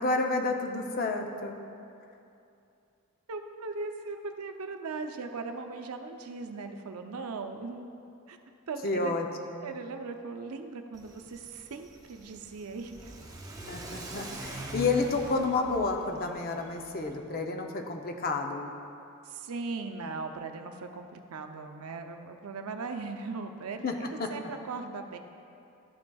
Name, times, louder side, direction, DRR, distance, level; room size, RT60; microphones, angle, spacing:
voice 1, 0.0-1.6 8.8-9.3 9.5-9.8 13.7-18.7 23.8-23.9 24.2-24.3, left 3 dB, 40° left, 3 dB, 0.6 m, -30 dB
voice 2, 3.3-7.9 8.3-8.4 8.7-9.1 9.6-13.1 19.3-25.2, right 4 dB, 75° right, 5 dB, 0.5 m, -39 dB
Car / Accelerating revving vroom, 10.9-17.1, right 1 dB, 15° right, 0.6 m, -43 dB
12.5 x 6.0 x 2.3 m, 2.6 s
head